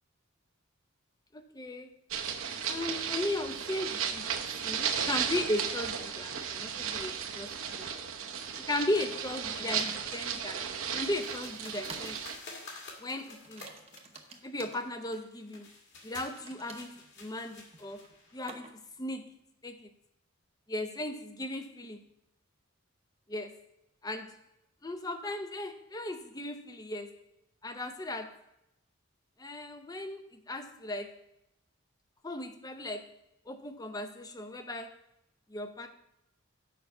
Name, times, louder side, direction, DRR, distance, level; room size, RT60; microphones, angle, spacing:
voice 1, 1.3-1.9 2.6-4.3 4.5-7.9 8.6-10.7 10.9-12.3 13.0-13.7 14.4-15.7 16.0-19.3 19.6-19.9 20.7-22.0 23.3-23.6 24.0-24.4 24.8-27.2 27.6-28.4 29.4-31.2 32.2-33.2 33.5-35.0 35.5-35.9, left 1 dB, 15° left, 8 dB, 0.6 m, -37 dB
sound 1, 2.1-12.4, right 7 dB, 65° right, 0.8 m, -35 dB
sound 2, 8.2-8.3 9.0-9.4 9.8-10.0 11.0-11.2 11.6-12.2 12.5-12.8 13.4-14.8 16.2-19.0, right 4 dB, 25° right, 0.8 m, -51 dB
sound 3, 11.1-18.5, left 3 dB, 50° left, 2.0 m, -50 dB
6.6 x 5.5 x 6.9 m, 0.82 s
head